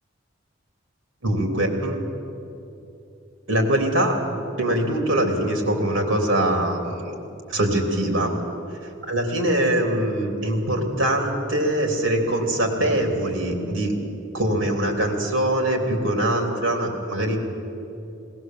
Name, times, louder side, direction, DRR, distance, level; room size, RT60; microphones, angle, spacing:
voice 1, 1.2-2.0 3.5-4.1 4.6-7.1 7.5-8.3 9.1-13.9 14.3-17.4, right 1 dB, 65° right, 2 dB, 3.6 m, -23 dB
20.0 x 18.5 x 7.8 m, 2.8 s
head